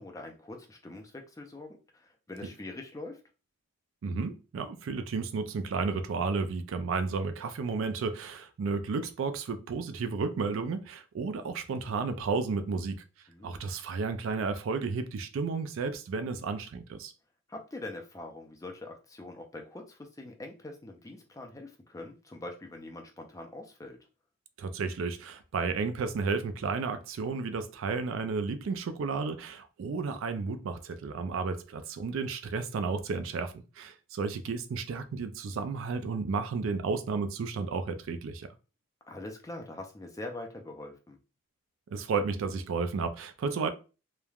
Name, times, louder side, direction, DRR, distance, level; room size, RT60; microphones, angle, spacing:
voice 1, 0.0-3.2 13.3-13.6 17.5-24.0 39.1-41.2, left 2 dB, 15° left, 0.3 m, -43 dB
voice 2, 4.0-13.0 13.4-17.1 24.6-38.5 41.9-43.7, right 4 dB, 65° right, 0.3 m, -32 dB
3.1 x 2.1 x 2.3 m
head